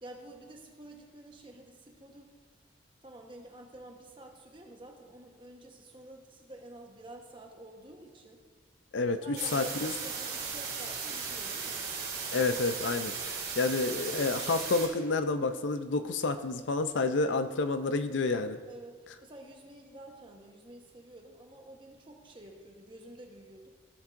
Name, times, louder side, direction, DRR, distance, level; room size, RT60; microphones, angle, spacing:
voice 1, 0.0-2.3 3.0-8.4 9.2-11.9 18.7-23.7, right 1 dB, 25° right, 1 dB, 1.1 m, -50 dB
voice 2, 8.9-9.9 12.3-18.6, left 3 dB, 85° left, 9 dB, 0.5 m, -29 dB
sound 1, 9.4-14.9, right 5 dB, 55° right, 2.6 m, -37 dB
15.5 x 7.3 x 2.6 m, 1.4 s
head